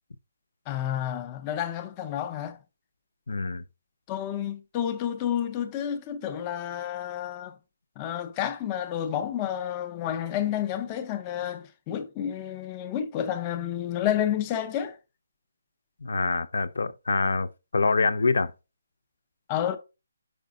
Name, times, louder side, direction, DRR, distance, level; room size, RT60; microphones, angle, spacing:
voice 1, 0.7-2.6 4.1-7.6 8.0-15.0 19.5-19.8, left 10 dB, 15° left, 0.5 m, -30 dB
voice 2, 3.3-3.6 16.0-18.5, left 4 dB, 70° left, 0.6 m, -25 dB
5.2 x 5.1 x 3.6 m
hypercardioid pair, 175°, 0 cm